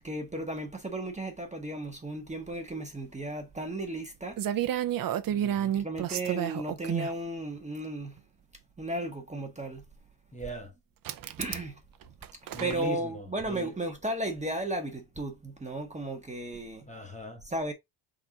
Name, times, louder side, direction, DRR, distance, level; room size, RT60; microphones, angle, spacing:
voice 1, 0.0-4.4 5.7-8.2 8.8-9.8 11.2-11.8 12.6-16.9 17.4-17.7, right 1 dB, 15° right, 0.9 m, -35 dB
sound 1, 4.0-4.1 4.4-7.1 8.2-8.3 11.0-11.7 12.0-12.9, right 11 dB, 45° right, 0.6 m, -31 dB
voice 2, 5.3-5.8 10.3-10.7 12.5-13.7 16.9-17.4, left 1 dB, 15° left, 1.0 m, -40 dB
4.0 x 3.8 x 2.8 m
cardioid pair, 110°, 49 cm